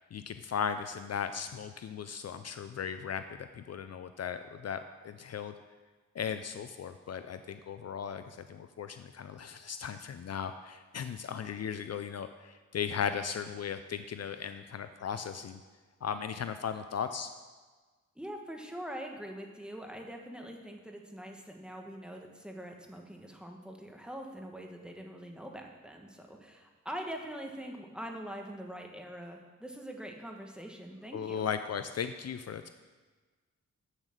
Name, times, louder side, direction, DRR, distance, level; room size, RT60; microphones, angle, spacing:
voice 1, 0.0-3.2 3.5-5.5 6.2-15.6 16.0-17.3 31.1-32.7, left 7 dB, 55° left, 10 dB, 0.5 m, -37 dB
voice 2, 18.2-31.5, equal, 5° right, 2 dB, 1.3 m, -43 dB
8.2 x 7.4 x 6.5 m, 1.4 s
wide cardioid pair, 110°, 30 cm